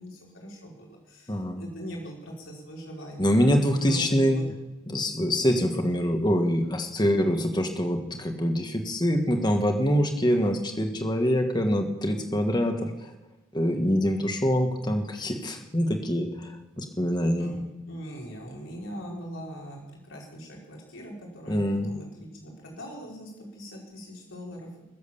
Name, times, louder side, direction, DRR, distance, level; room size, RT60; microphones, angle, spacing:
voice 1, 0.0-3.3 3.9-4.4 17.4-24.7, equal, 80° left, -2 dB, 4.7 m, -41 dB
voice 2, 1.3-1.7 3.2-4.4 4.9-13.1 13.5-17.6 21.5-21.9, equal, 20° left, 5 dB, 1.5 m, -25 dB
21.0 x 7.9 x 7.0 m, 1.1 s
head